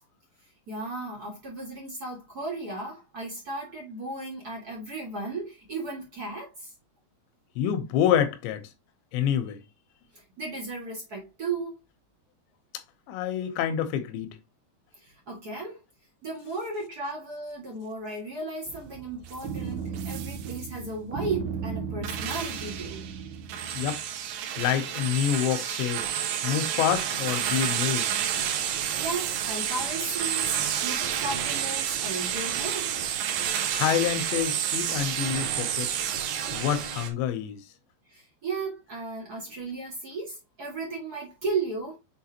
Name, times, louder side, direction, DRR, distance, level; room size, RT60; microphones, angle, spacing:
voice 1, 0.7-6.7 10.1-11.8 14.9-15.8 16.2-23.1 29.0-32.9 38.1-42.0, right 3 dB, 40° right, 1.3 m, -35 dB
voice 2, 7.6-8.7 9.1-9.6 13.1-14.4 23.7-24.0 24.6-26.1 26.4-28.1 33.7-36.0 36.5-37.7, left 9 dB, 85° left, 3.1 m, -27 dB
sound 1, 18.7-37.1, right 9 dB, 75° right, 2.9 m, -30 dB
7.3 x 4.5 x 2.9 m
omnidirectional pair, 5.0 m